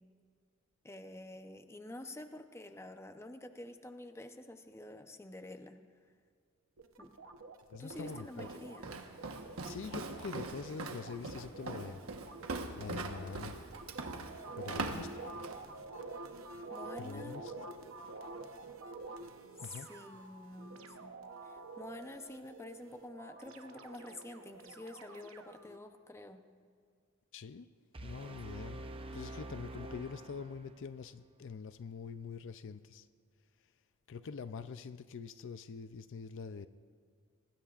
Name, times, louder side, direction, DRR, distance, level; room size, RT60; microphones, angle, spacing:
voice 1, 0.8-5.8 7.0-7.1 7.8-8.9 14.7-15.3 16.7-17.4 19.6-21.2 21.4-26.4, left 1 dB, 15° left, 7 dB, 0.7 m, -48 dB
sound 1, 6.8-25.8, right 3 dB, 65° right, 0.9 m, -49 dB
voice 2, 7.7-8.5 9.7-12.0 12.8-13.6 14.6-15.1 17.0-17.5 19.6-19.9 27.3-27.7 28.0-28.9 29.1-33.1 34.1-36.7, left 5 dB, 60° left, 12 dB, 0.5 m, -44 dB
Walk footsteps, 7.9-15.6, right 3 dB, 90° right, 1.2 m, -42 dB
sound 2, 27.9-31.0, right 2 dB, 25° right, 0.6 m, -46 dB
25.0 x 19.5 x 2.5 m, 2.1 s
head